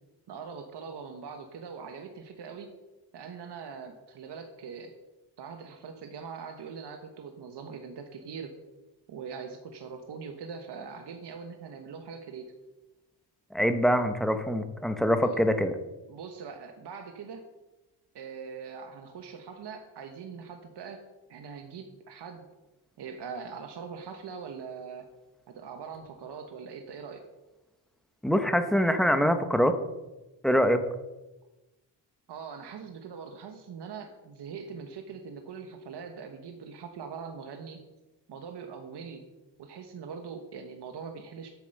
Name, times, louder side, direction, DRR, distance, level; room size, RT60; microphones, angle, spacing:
voice 1, 0.3-2.7 3.1-4.9 5.4-8.5 9.1-12.5 15.2-15.4 16.1-17.4 18.1-21.0 21.3-22.5 23.0-25.1 25.5-27.2 32.3-37.8 38.3-39.2 39.6-41.5, right 6 dB, 65° right, 5 dB, 1.2 m, -42 dB
voice 2, 13.5-15.7 28.2-29.8 30.4-30.8, equal, ahead, 8 dB, 0.9 m, -24 dB
8.6 x 7.5 x 6.5 m, 1.1 s
cardioid pair, 110°, 45 cm